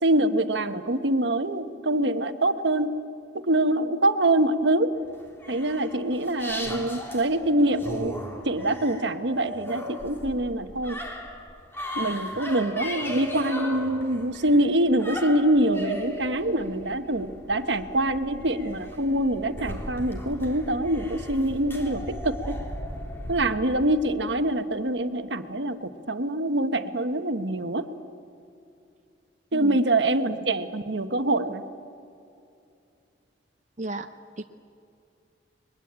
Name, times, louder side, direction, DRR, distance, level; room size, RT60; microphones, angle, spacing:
voice 1, 0.0-3.0 3.3-4.9 5.5-8.2 8.4-11.0 11.9-22.6 23.3-27.9 29.5-31.6, right 1 dB, 75° right, 9 dB, 1.3 m, -25 dB
sound 1, 5.1-23.4, equal, 15° left, 3.4 m, -37 dB
voice 2, 33.8-34.1 34.4-34.5, right 2 dB, 40° right, 6 dB, 0.8 m, -33 dB
30.0 x 22.0 x 8.8 m, 2.6 s
head